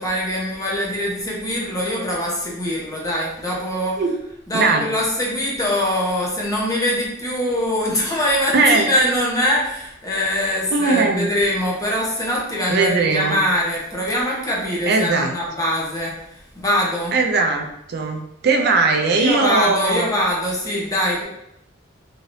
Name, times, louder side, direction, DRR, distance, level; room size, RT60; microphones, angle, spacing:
voice 1, 0.0-4.0 4.5-17.2 19.2-21.2, equal, 20° left, -4 dB, 0.8 m, -23 dB
voice 2, 4.5-4.9 8.5-8.9 10.7-11.3 12.7-13.4 14.9-15.3 17.1-20.1, right 3 dB, 60° right, 3 dB, 0.4 m, -19 dB
3.2 x 2.8 x 2.6 m, 0.78 s
head